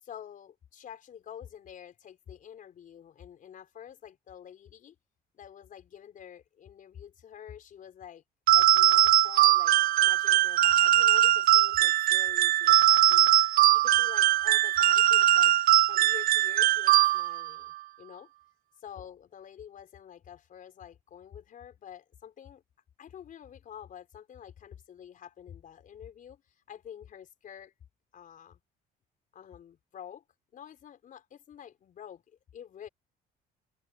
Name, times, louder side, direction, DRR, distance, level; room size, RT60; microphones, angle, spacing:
voice 1, 0.0-4.9 5.3-8.2 8.5-9.8 10.0-15.5 15.9-18.3 18.8-22.6 23.0-26.4 26.7-27.7 28.1-28.6 29.3-30.2 30.5-32.9, left 9 dB, 50° left, 5.1 m, -48 dB
sound 1, 8.5-17.5, right 14 dB, 60° right, 0.5 m, -21 dB
cardioid pair, 110°, 17 cm